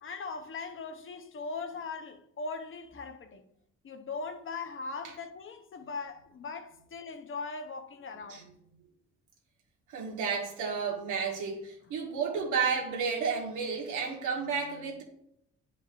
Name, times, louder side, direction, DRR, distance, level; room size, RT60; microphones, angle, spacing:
voice 1, 0.0-3.5 3.8-8.5, left 4 dB, 45° left, 0.9 m, -40 dB
voice 2, 9.9-15.0, right 5 dB, 85° right, 1.8 m, -32 dB
9.4 x 5.3 x 2.6 m
cardioid pair, 90°, 30 cm